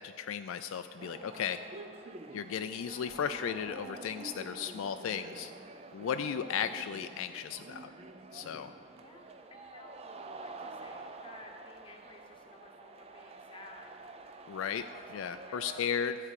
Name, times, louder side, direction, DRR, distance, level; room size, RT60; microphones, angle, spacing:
voice 1, 0.0-1.6 2.3-5.5 5.9-7.9 8.3-8.7 14.5-14.8 15.1-16.2, left 8 dB, 65° left, 9 dB, 0.3 m, -35 dB
sound 1, 1.0-15.8, right 3 dB, 25° right, 0.4 m, -48 dB
voice 2, 9.0-13.9 14.9-15.8, left 2 dB, 25° left, 2 dB, 1.0 m, -54 dB
13.0 x 4.8 x 8.2 m, 2.4 s
head